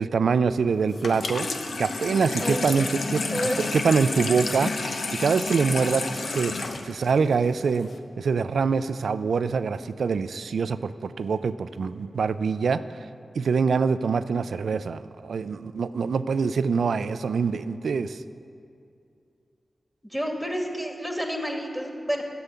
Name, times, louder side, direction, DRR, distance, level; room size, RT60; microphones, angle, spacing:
voice 1, 0.0-1.5 1.8-3.4 3.7-4.7 5.2-6.5 6.8-7.9 8.2-12.8 13.4-18.2, right 5 dB, 90° right, 13 dB, 0.4 m, -24 dB
Water tap faucet / Sink (filling or washing), 0.9-8.0, left 3 dB, 75° left, 0.9 m, -31 dB
voice 2, 3.3-3.8 20.0-22.2, equal, ahead, 2 dB, 2.1 m, -30 dB
13.5 x 6.9 x 8.4 m, 2.5 s
cardioid pair, 65°, 0 cm